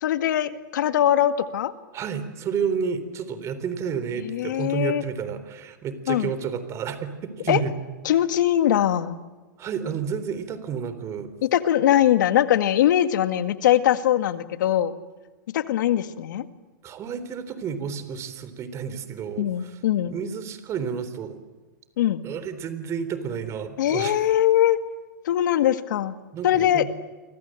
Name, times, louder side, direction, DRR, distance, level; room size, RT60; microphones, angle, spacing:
voice 1, 0.0-1.7 4.2-5.0 6.1-6.3 7.5-7.6 8.0-9.2 11.4-14.9 15.5-16.5 19.4-20.1 22.0-22.2 23.8-24.8 25.2-26.2 26.4-26.9, left 11 dB, 70° left, 10 dB, 1.9 m, -21 dB
voice 2, 1.9-7.7 9.6-11.3 16.8-19.8 20.0-21.4 22.2-24.2 26.3-26.9, right 7 dB, 25° right, 12 dB, 3.7 m, -31 dB
29.5 x 24.5 x 7.8 m, 1.3 s
hypercardioid pair, 130°, 11 cm